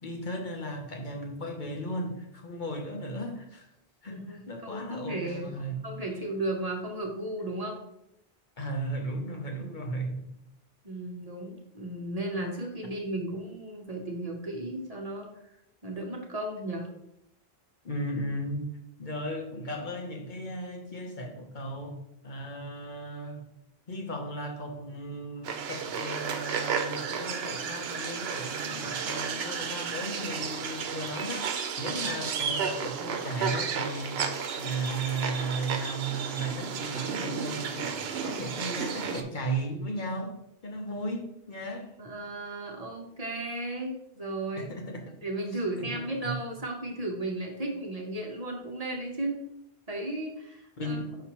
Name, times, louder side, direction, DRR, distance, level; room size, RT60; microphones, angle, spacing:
voice 1, 0.0-3.7 4.0-6.1 8.6-10.3 17.8-18.7 19.0-22.0 22.2-23.4 23.9-40.3 40.6-41.9 44.6-45.1 45.5-46.4 50.8-51.2, right 1 dB, 50° left, 1 dB, 1.0 m, -36 dB
voice 2, 4.1-5.5 5.8-7.8 10.8-15.3 15.8-16.9 42.0-44.7 45.2-49.4 49.9-51.0, right 1 dB, 40° right, 0 dB, 1.0 m, -35 dB
sound 1, 25.4-39.2, right 6 dB, 80° right, 0.9 m, -33 dB
5.8 x 5.6 x 2.9 m, 0.81 s
omnidirectional pair, 1.0 m